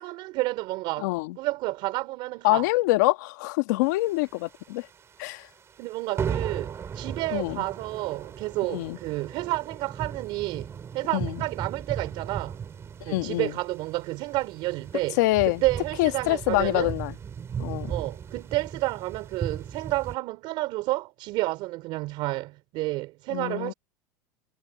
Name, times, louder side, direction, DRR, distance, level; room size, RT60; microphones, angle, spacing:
voice 1, 0.0-1.1 1.4-2.7 5.8-12.6 13.0-15.2 15.4-16.9 17.9-23.7, right 20 dB, 55° right, 4.1 m, -30 dB
voice 2, 1.0-1.3 2.4-4.9 5.2-5.5 7.3-7.6 8.7-9.0 11.1-11.3 13.1-13.5 15.2-15.6 16.0-17.1 17.6-17.9 23.3-23.7, left 20 dB, 75° left, 1.5 m, -25 dB
sound 1, 4.0-4.9 5.2-5.4 5.7-5.9 6.2-20.2, right 7 dB, 25° right, 4.1 m, -37 dB
supercardioid pair, 120°, 10 cm